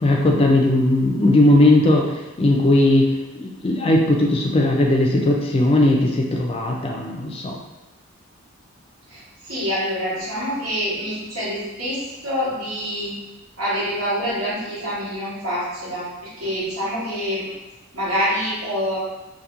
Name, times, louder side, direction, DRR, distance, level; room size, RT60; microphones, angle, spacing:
voice 1, 0.0-7.6, left 1 dB, 25° left, 0 dB, 0.3 m, -18 dB
voice 2, 9.5-13.2 13.6-16.1 16.4-17.5 17.9-19.0, equal, 90° right, -10 dB, 1.5 m, -26 dB
2.9 x 2.5 x 2.4 m, 1.1 s
head